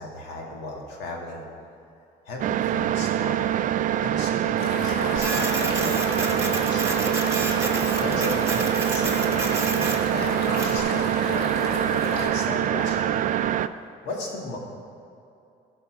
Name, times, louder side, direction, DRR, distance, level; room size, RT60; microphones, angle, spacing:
voice 1, 0.0-1.4 2.3-3.5 4.0-7.1 8.0-13.2 14.0-14.6, left 1 dB, 90° left, -1 dB, 2.0 m, -36 dB
sound 1, 2.4-13.7, right 11 dB, 50° right, 0.4 m, -24 dB
sound 2, 4.6-12.3, left 2 dB, 70° left, 1.9 m, -33 dB
Printer, 5.2-10.8, right 2 dB, 15° right, 1.3 m, -31 dB
15.0 x 5.7 x 5.0 m, 2.6 s
cardioid pair, 110°, 17 cm